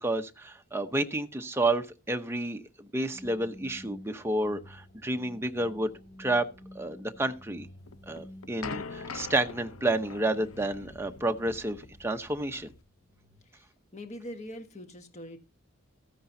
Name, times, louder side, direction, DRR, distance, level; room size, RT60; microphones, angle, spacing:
voice 1, 0.0-5.9 6.2-6.5 6.7-7.7 8.1-12.7, right 2 dB, 10° right, 0.8 m, -30 dB
sound 1, 3.1-13.4, left 1 dB, 50° left, 2.7 m, -52 dB
sound 2, 7.9-12.8, left 5 dB, 80° left, 0.7 m, -43 dB
voice 2, 13.4-15.4, equal, 35° left, 1.5 m, -43 dB
14.0 x 10.0 x 2.7 m
head